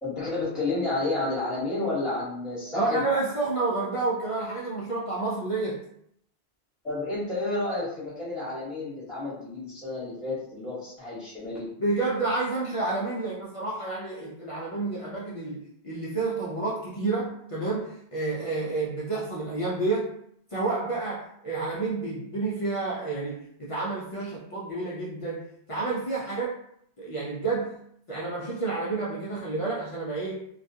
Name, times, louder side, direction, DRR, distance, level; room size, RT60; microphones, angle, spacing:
voice 1, 0.0-3.0 6.8-11.7, left 2 dB, ahead, -8 dB, 1.0 m, -31 dB
voice 2, 2.7-5.8 11.8-20.1 20.5-26.5 27.0-27.8 28.1-30.4, right 3 dB, 55° left, -6 dB, 0.3 m, -29 dB
2.3 x 2.2 x 2.6 m, 0.70 s
omnidirectional pair, 1.1 m